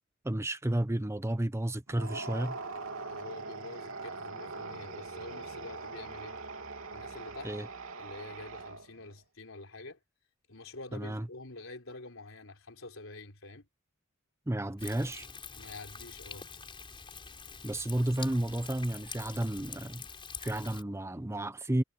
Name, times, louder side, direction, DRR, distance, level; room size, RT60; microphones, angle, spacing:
voice 1, 0.2-2.6 7.4-7.7 10.9-11.3 14.5-15.3 17.6-20.1 20.4-21.8, right 1 dB, 15° right, 0.7 m, -32 dB
sound 1, 1.9-9.1, right 3 dB, 85° right, 3.0 m, -42 dB
voice 2, 3.0-6.4 6.9-7.5 8.0-10.0 10.5-13.7 15.6-16.5, left 2 dB, 75° left, 4.1 m, -47 dB
Thunder, 14.8-20.8, left 5 dB, 25° left, 5.1 m, -46 dB
head